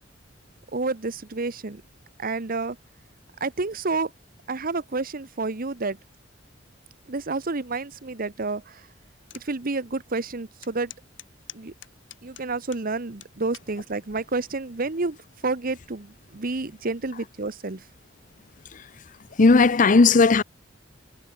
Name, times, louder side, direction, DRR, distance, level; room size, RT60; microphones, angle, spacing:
voice 1, 0.7-1.8 2.2-2.8 3.4-4.1 4.5-6.0 7.1-8.8 9.3-10.9 11.5-11.7 12.2-15.2 15.4-17.8, right 3 dB, 50° right, 1.1 m, -29 dB
sound 1, 9.3-9.5 10.0-10.1 10.6-12.9 13.2-13.7 14.4-14.7, left 12 dB, 75° left, 4.7 m, -44 dB
voice 2, 19.4-20.4, left 3 dB, 45° left, 0.6 m, -16 dB
head